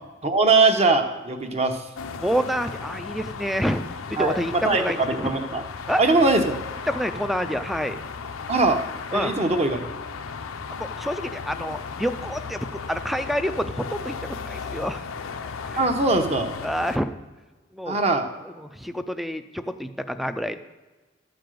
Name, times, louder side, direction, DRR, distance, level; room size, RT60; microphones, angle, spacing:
voice 1, 0.2-1.8 4.2-5.6 6.0-6.6 8.5-8.8 9.1-9.8 15.8-16.5 17.8-18.3, right 3 dB, 30° right, 6 dB, 0.9 m, -21 dB
sound 1, 2.0-17.0, left 5 dB, 80° left, 0.6 m, -35 dB
voice 2, 2.2-3.8 4.1-5.3 5.9-6.0 6.9-8.0 9.1-9.3 10.8-15.0 15.4-15.8 16.6-17.1 17.7-18.0 18.6-20.6, equal, ahead, 10 dB, 0.4 m, -28 dB
12.5 x 5.2 x 7.6 m, 1.3 s
head